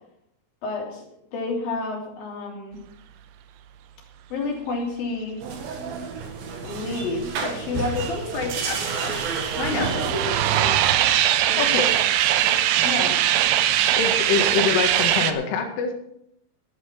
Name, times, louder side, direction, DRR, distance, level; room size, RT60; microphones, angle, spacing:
voice 1, 0.6-1.0 1.3-2.8 4.3-5.4 6.6-9.2 9.6-10.1 11.5-11.9 12.4-12.6 12.8-13.2, left 3 dB, 50° left, 0 dB, 4.5 m, -30 dB
sound 1, 5.4-10.8, right 4 dB, 60° right, 3.1 m, -30 dB
sound 2, 8.2-15.3, right 12 dB, 80° right, 3.1 m, -21 dB
voice 2, 11.6-11.9 13.6-13.7 14.0-15.9, left 6 dB, 80° left, 5 dB, 4.3 m, -25 dB
12.0 x 11.0 x 6.0 m, 0.74 s
omnidirectional pair, 5.6 m